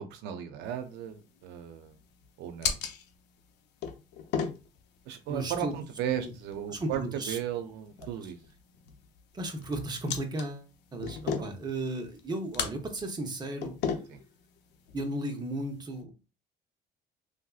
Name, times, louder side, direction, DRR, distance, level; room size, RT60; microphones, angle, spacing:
voice 1, 0.0-1.9 2.4-2.8 5.1-8.4 11.4-11.5 14.1-14.2, right 9 dB, 90° right, 0.5 m, -35 dB
sound 1, 0.7-16.0, left 7 dB, 90° left, 0.6 m, -39 dB
voice 2, 5.3-5.7 6.1-6.3 6.7-7.4 8.2-8.3 9.3-13.8 14.9-16.2, right 2 dB, 25° right, 0.8 m, -35 dB
3.3 x 2.5 x 2.4 m
cardioid pair, 110°, 17 cm